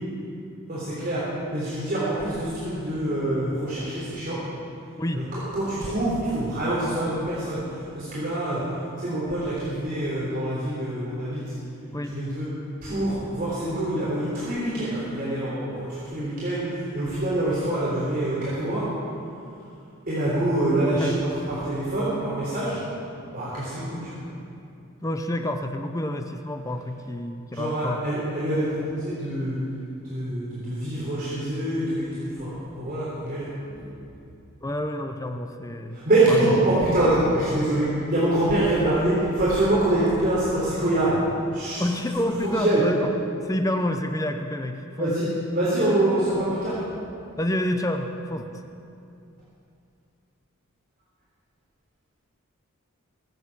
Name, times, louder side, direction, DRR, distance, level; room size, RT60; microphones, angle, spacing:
voice 1, 0.7-1.2 1.5-4.4 5.1-7.6 7.9-8.6 9.0-11.4 12.0-12.5 12.8-18.8 20.1-22.8 23.3-24.2 27.5-29.6 30.1-33.9 35.9-41.2 41.5-41.8 42.4-42.8 45.0-46.8, right 1 dB, 45° right, -9 dB, 3.6 m, -25 dB
voice 2, 5.0-5.3 11.9-12.2 20.9-21.2 25.0-28.1 34.6-36.0 36.3-36.4 41.8-45.1 47.4-48.6, left 1 dB, 15° left, 6 dB, 0.6 m, -28 dB
23.0 x 8.0 x 6.1 m, 2.6 s
head